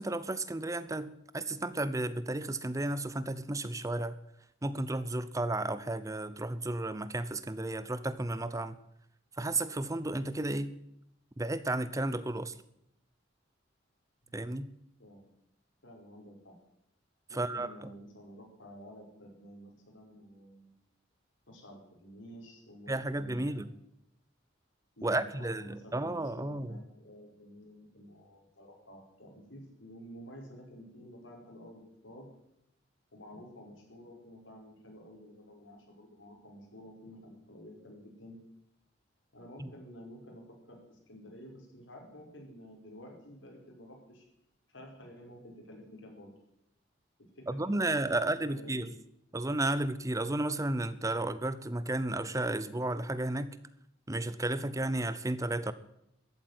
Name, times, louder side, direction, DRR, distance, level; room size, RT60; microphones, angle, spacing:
voice 1, 0.0-4.2 4.6-8.8 9.4-10.8 11.4-12.5 14.3-14.7 17.3-17.7 22.9-23.7 25.0-26.8 39.6-39.7 47.5-48.9 49.3-53.6 54.1-55.7, right 2 dB, 15° right, 0.7 m, -33 dB
voice 2, 15.0-15.3 15.8-16.5 17.3-20.8 21.5-23.7 25.0-32.3 33.1-38.4 39.3-44.3 44.7-46.3 47.2-48.9, equal, 85° left, 5.1 m, -51 dB
14.0 x 8.6 x 9.4 m
head